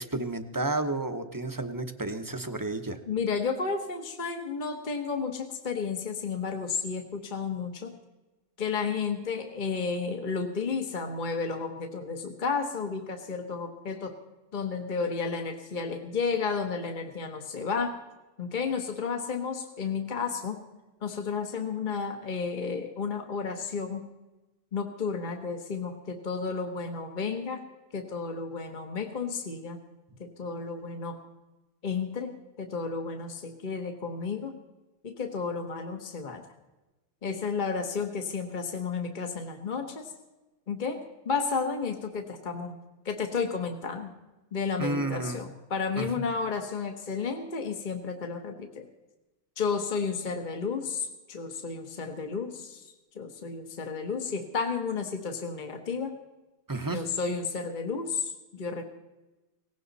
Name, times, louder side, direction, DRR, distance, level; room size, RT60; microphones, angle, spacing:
voice 1, 0.0-3.0 44.8-45.4 46.0-46.1 56.7-57.0, right 2 dB, 20° right, 7 dB, 1.0 m, -31 dB
voice 2, 3.1-7.9 8.6-14.1 14.5-18.0 18.4-20.6 21.0-24.1 24.7-27.6 27.9-29.8 30.2-31.2 31.8-32.3 32.6-34.5 35.0-36.4 37.2-40.1 40.7-42.7 43.0-44.1 44.5-48.8 49.6-52.9 53.1-56.2 56.9-58.8, left 5 dB, 40° left, 5 dB, 1.3 m, -32 dB
18.5 x 16.5 x 4.1 m, 1.1 s
omnidirectional pair, 1.2 m